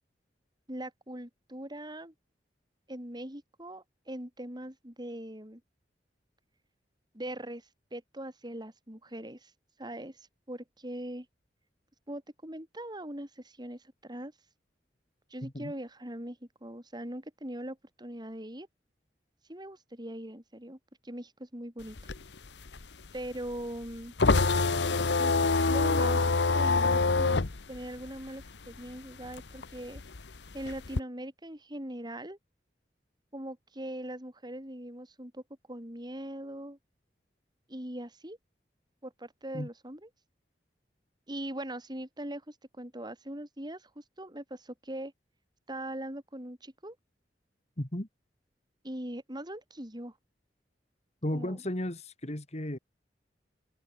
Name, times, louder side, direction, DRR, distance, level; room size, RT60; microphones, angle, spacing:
voice 1, 0.7-2.1 2.9-5.6 7.1-7.6 7.9-9.5 9.8-10.2 10.5-11.3 12.1-14.3 15.3-18.7 19.5-20.8 21.0-22.0 23.1-24.1 25.2-25.3 25.7-27.4 27.7-30.0 30.5-32.4 33.3-35.4 35.7-36.8 37.7-38.4 39.0-40.1 41.3-45.1 45.7-47.0 48.8-50.1 51.3-51.6, right 1 dB, 25° right, 6.6 m, -41 dB
voice 2, 15.4-15.7 39.5-39.7 47.8-48.1 51.2-52.8, left 1 dB, 40° left, 2.9 m, -34 dB
sound 1, 21.8-28.9 29.2-31.0, left 3 dB, 85° left, 1.1 m, -26 dB
head